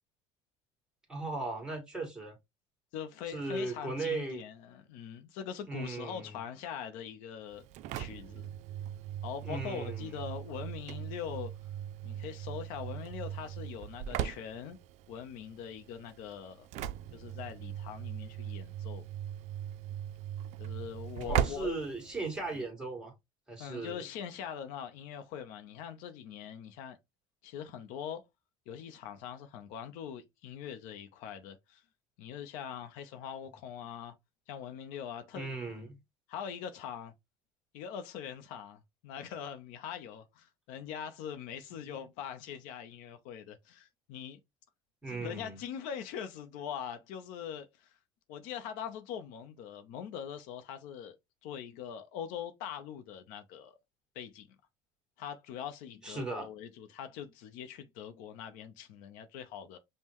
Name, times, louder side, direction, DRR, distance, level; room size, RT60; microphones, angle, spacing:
voice 1, 1.1-2.3 3.3-4.4 5.7-6.3 9.4-10.1 21.3-23.1 23.5-24.0 35.3-36.0 45.0-45.6 56.0-56.5, right 3 dB, 5° right, 1.5 m, -37 dB
voice 2, 2.9-7.7 7.9-8.5 9.2-11.5 12.0-14.8 15.1-16.7 17.1-19.1 20.6-21.7 22.5-22.6 23.6-27.0 27.4-28.2 28.7-31.8 32.2-34.1 34.5-35.6 36.3-37.1 37.7-44.4 45.1-47.9 48.3-51.2 51.4-53.8 54.1-54.5 55.2-59.8, left 8 dB, 70° left, 0.6 m, -42 dB
Engine / Slam, 7.5-22.7, right 10 dB, 55° right, 0.4 m, -39 dB
5.4 x 2.1 x 2.9 m
supercardioid pair, 115°, 14 cm